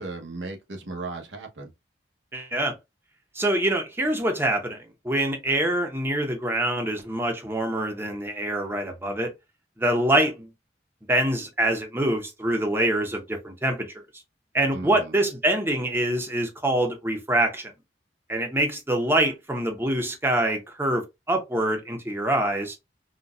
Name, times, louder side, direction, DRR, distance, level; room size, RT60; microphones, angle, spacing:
voice 1, 0.0-1.7 14.7-15.2, right 3 dB, 85° right, 0.9 m, -36 dB
voice 2, 2.3-2.7 3.3-9.3 9.8-10.5 11.1-13.9 14.5-17.7 18.3-22.8, right 1 dB, 15° right, 0.7 m, -25 dB
4.0 x 2.2 x 2.3 m
head